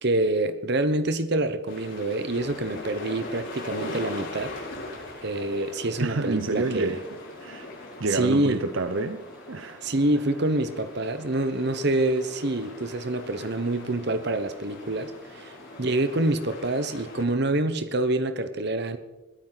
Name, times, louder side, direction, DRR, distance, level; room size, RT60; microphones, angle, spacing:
voice 1, 0.0-4.5 5.2-7.0 8.1-8.6 9.8-15.5 15.8-19.0, right 2 dB, 55° right, 11 dB, 1.2 m, -26 dB
sound 1, 1.7-17.2, left 2 dB, 70° left, 5.8 m, -41 dB
sound 2, 2.4-16.2, left 1 dB, 5° right, 4.1 m, -50 dB
voice 2, 6.0-7.0 7.4-9.8, right 3 dB, 75° right, 10 dB, 0.7 m, -29 dB
21.5 x 13.5 x 4.1 m, 1.1 s
head